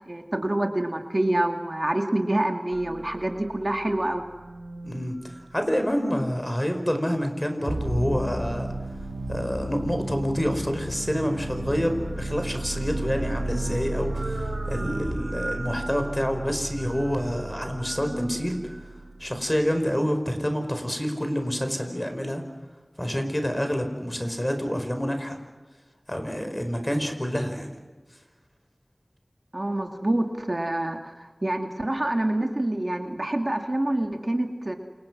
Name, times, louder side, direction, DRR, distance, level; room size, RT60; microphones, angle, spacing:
voice 1, 0.1-4.2 29.5-34.8, right 1 dB, 45° right, 4 dB, 2.4 m, -26 dB
sound 1, 2.7-6.3 10.5-19.8, right 2 dB, 70° right, 3.6 m, -36 dB
voice 2, 4.8-5.1 5.5-8.7 9.3-18.6 19.2-22.4 23.0-25.4 26.1-27.7, equal, 20° left, 6 dB, 5.0 m, -27 dB
sound 2, 7.7-15.1, right 1 dB, 85° right, 3.3 m, -34 dB
29.0 x 28.5 x 6.2 m, 1.3 s
wide cardioid pair, 45°, 0 cm